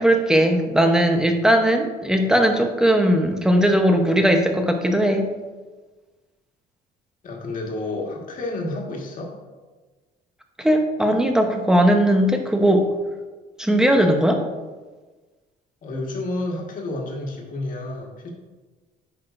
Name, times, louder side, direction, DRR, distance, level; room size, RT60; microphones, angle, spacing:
voice 1, 0.0-5.3 10.6-12.9 13.6-14.4, equal, 5° right, 4 dB, 0.9 m, -18 dB
voice 2, 7.2-9.3 15.8-18.3, left 2 dB, 55° left, 0 dB, 1.6 m, -30 dB
9.1 x 5.8 x 2.6 m, 1.3 s
cardioid pair, 110°, 17 cm